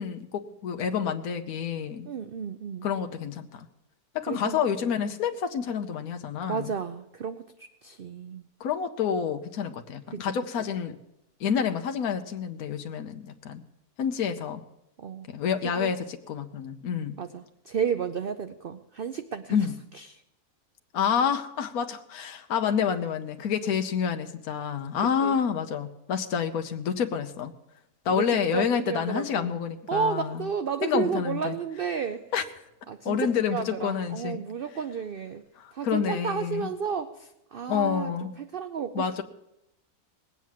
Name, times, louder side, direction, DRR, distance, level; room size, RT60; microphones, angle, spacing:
voice 1, 0.0-2.1 2.8-3.7 4.1-6.7 8.6-11.0 11.4-13.6 14.0-14.6 15.3-17.1 19.5-19.7 20.9-27.5 28.0-30.5 30.8-31.6 32.3-32.4 33.0-34.4 35.6-36.7 37.7-38.3 38.9-39.2, left 7 dB, 70° left, 6 dB, 1.3 m, -28 dB
voice 2, 2.1-2.9 4.3-4.6 6.5-7.4 7.8-8.5 10.1-10.3 15.0-15.3 15.6-15.9 17.2-19.6 20.0-20.2 25.0-25.4 28.1-28.3 28.5-29.5 29.9-32.2 32.9-33.2 33.5-35.4 35.7-38.1 38.4-39.2, right 6 dB, 60° right, 10 dB, 0.6 m, -32 dB
19.5 x 8.4 x 7.5 m, 0.84 s
omnidirectional pair, 1.6 m